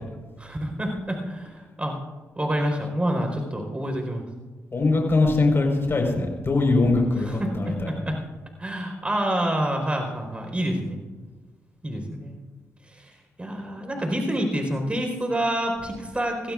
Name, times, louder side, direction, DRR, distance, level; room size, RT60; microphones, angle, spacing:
voice 1, 0.4-1.9 2.4-4.2 7.3-8.2 8.6-11.0 11.8-12.4 12.9-13.1 13.4-16.5, right 1 dB, 20° right, 2 dB, 4.4 m, -27 dB
voice 2, 4.7-7.9, left 3 dB, 40° left, 1 dB, 4.7 m, -22 dB
23.0 x 16.0 x 2.5 m, 1.3 s
cardioid pair, 60°, 6 cm